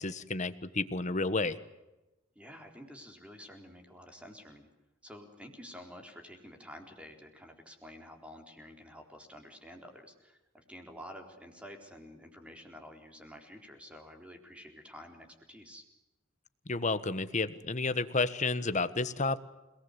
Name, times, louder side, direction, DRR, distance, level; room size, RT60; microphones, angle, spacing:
voice 1, 0.0-1.6 16.7-19.4, left 3 dB, 35° left, 13 dB, 1.3 m, -31 dB
voice 2, 2.4-4.7 5.0-15.9, equal, 5° right, 4 dB, 4.0 m, -50 dB
29.5 x 19.0 x 8.2 m, 1.0 s
head